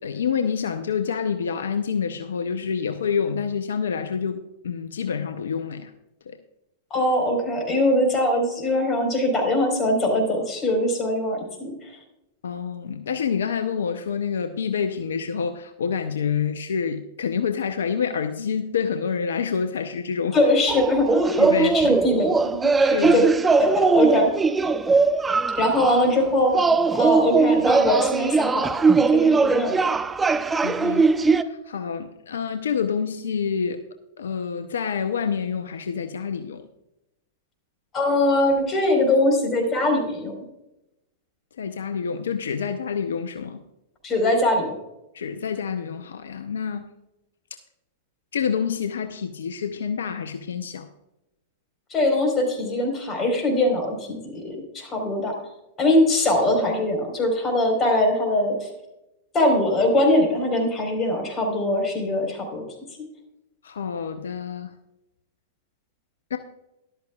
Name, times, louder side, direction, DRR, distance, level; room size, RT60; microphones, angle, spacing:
voice 1, 0.0-5.9 6.3-6.4 12.4-20.4 21.4-22.0 22.8-23.3 30.6-33.8 34.2-36.7 41.6-43.6 45.1-46.9 48.3-50.9 63.6-64.7 66.3-66.4, left 6 dB, 75° left, 9 dB, 0.7 m, -27 dB
voice 2, 6.9-11.7 20.3-21.5 21.7-22.7 23.1-23.2 23.6-24.3 25.6-26.5 26.9-29.8 37.9-40.4 44.0-44.7 51.9-55.3 55.8-58.7 59.3-62.6, left 1 dB, 25° left, 3 dB, 4.3 m, -22 dB
sound 1, 20.7-26.1 26.5-31.4, right 4 dB, 15° right, 0.7 m, -20 dB
13.5 x 12.0 x 2.4 m, 0.91 s
hypercardioid pair, 100°, 0 cm